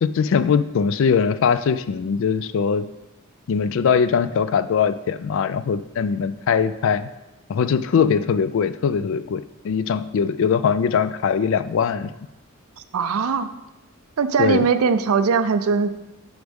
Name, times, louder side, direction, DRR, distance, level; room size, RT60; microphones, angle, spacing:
voice 1, 0.0-2.8 3.5-7.1 7.5-12.1 14.4-14.7, left 6 dB, 60° left, 14 dB, 0.3 m, -21 dB
voice 2, 12.9-13.5 14.2-15.9, right 5 dB, 75° right, 11 dB, 0.5 m, -20 dB
7.9 x 5.1 x 3.5 m, 0.95 s
head